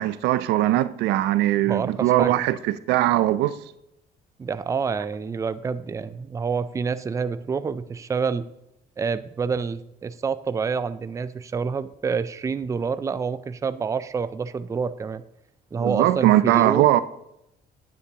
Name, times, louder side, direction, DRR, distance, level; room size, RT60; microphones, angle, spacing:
voice 1, 0.0-3.6 15.8-17.0, right 14 dB, 85° right, 0.5 m, -20 dB
voice 2, 1.7-2.4 4.4-8.5 9.0-15.2 15.7-16.9, right 5 dB, 20° right, 0.4 m, -28 dB
9.7 x 9.2 x 2.9 m
cardioid pair, 110°, 17 cm